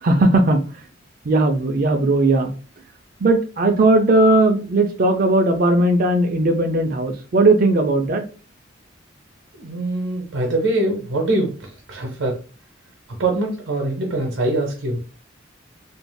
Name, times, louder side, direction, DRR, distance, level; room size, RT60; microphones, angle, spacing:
voice 1, 0.0-0.6 1.2-2.5 3.2-8.3, right 2 dB, 45° right, 4 dB, 0.4 m, -17 dB
voice 2, 9.5-12.4 13.2-15.0, right 2 dB, 75° right, 0 dB, 0.7 m, -23 dB
3.2 x 2.5 x 2.2 m, 0.35 s
head